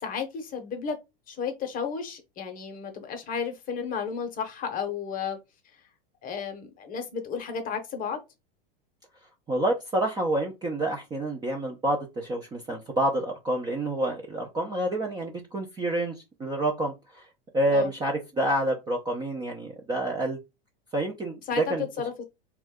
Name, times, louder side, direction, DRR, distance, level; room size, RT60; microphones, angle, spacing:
voice 1, 0.0-1.0 1.3-5.4 6.2-8.2 17.7-17.9 21.5-22.2, left 6 dB, 30° left, 0.7 m, -33 dB
voice 2, 9.5-17.2 17.5-20.4 20.9-21.9, right 1 dB, 15° right, 0.4 m, -28 dB
2.5 x 2.3 x 3.5 m
hypercardioid pair, 115°, 29 cm